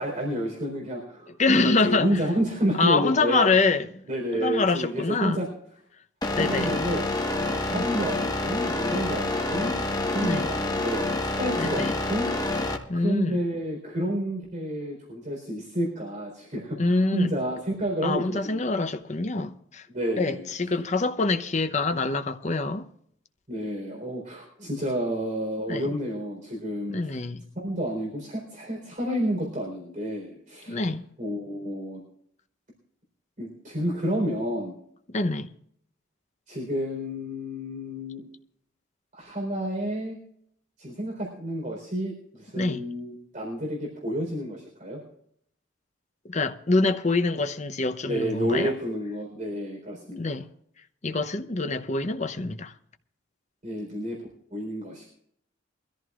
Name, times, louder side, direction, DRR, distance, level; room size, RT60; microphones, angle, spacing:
voice 1, 0.0-3.5 4.1-5.5 6.4-11.1 11.4-12.3 12.9-18.7 19.9-20.5 23.5-27.1 27.6-30.9 31.2-32.0 33.4-34.7 36.5-38.3 39.1-40.2 40.8-45.0 48.1-50.4 53.6-54.2 54.5-55.1, equal, 40° right, 4.1 m, -30 dB
voice 2, 1.4-2.1 2.8-4.0 4.3-5.4 6.4-6.7 7.7-8.0 10.2-10.5 11.6-12.0 12.9-13.4 16.8-17.3 18.0-19.9 20.2-22.9 25.7-25.9 26.9-27.4 30.7-31.1 35.1-35.5 42.6-42.8 46.3-48.7 50.2-50.5 51.0-52.7, left 3 dB, 35° left, 0.8 m, -25 dB
sound 1, 6.2-12.8, left 2 dB, 20° left, 1.3 m, -27 dB
23.0 x 14.0 x 2.5 m
head